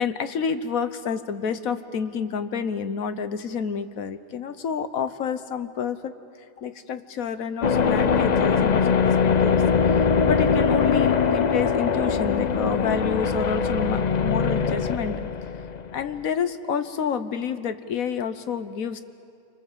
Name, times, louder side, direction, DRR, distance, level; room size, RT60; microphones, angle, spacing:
voice 1, 0.0-6.1 6.6-15.2 15.9-19.0, left 6 dB, 80° left, 11 dB, 1.4 m, -29 dB
sound 1, 7.6-16.2, left 6 dB, 45° left, 0.6 m, -22 dB
28.5 x 25.5 x 7.4 m, 2.5 s
omnidirectional pair, 1.5 m